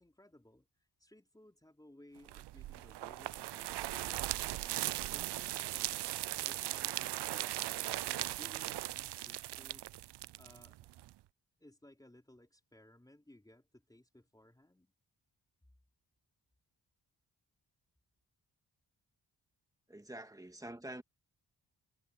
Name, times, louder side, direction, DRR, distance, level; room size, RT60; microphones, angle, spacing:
voice 1, 0.0-4.2 4.5-6.0 6.4-10.0 10.3-10.9 11.6-14.9, left 1 dB, 10° left, 4.5 m, -60 dB
sound 1, 2.3-11.1, right 15 dB, 75° right, 0.5 m, -39 dB
voice 2, 19.9-21.0, right 1 dB, 10° right, 2.0 m, -46 dB
wide cardioid pair, 115°, 41 cm